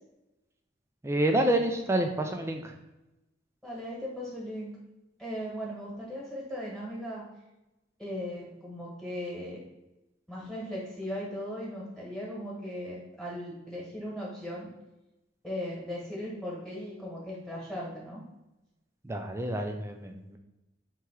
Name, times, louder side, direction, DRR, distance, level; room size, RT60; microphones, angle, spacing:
voice 1, 1.0-2.7 19.0-20.4, right 1 dB, 15° right, 4 dB, 0.4 m, -28 dB
voice 2, 3.6-4.7 5.2-7.2 8.0-9.6 10.3-14.7 15.4-18.2, equal, ahead, -5 dB, 1.4 m, -38 dB
3.4 x 3.0 x 4.6 m, 0.98 s
head